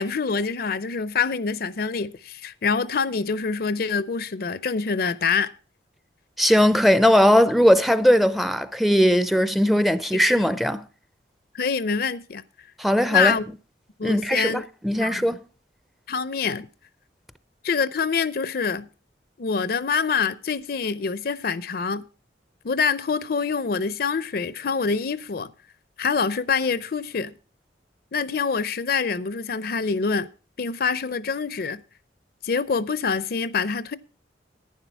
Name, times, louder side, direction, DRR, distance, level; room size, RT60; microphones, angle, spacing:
voice 1, 0.0-5.5 10.4-10.5 11.5-12.4 13.1-13.4 14.0-14.7 15.0-15.3 16.1-16.7 17.6-18.9 19.4-22.0 22.6-25.5 26.0-27.3 28.1-30.3 30.6-31.8 32.4-34.0, left 5 dB, 60° left, 0.6 m, -25 dB
voice 2, 6.4-10.8 12.8-13.3 14.0-15.4, equal, ahead, 0.5 m, -19 dB
11.0 x 9.6 x 4.5 m
head